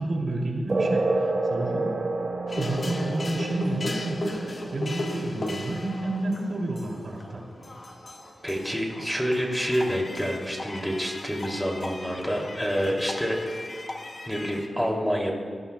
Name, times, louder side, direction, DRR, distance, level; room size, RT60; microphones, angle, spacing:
voice 1, 0.0-1.9 2.5-7.4, right 2 dB, 65° right, -1 dB, 2.8 m, -30 dB
sound 1, 0.7-7.7, right 2 dB, 40° right, 1.2 m, -31 dB
sound 2, 2.5-14.7, left 2 dB, 45° left, 1.6 m, -37 dB
voice 2, 8.4-13.6 14.3-15.3, equal, 5° left, -1 dB, 2.8 m, -27 dB
26.0 x 18.5 x 2.3 m, 2.1 s
wide cardioid pair, 105°, 0 cm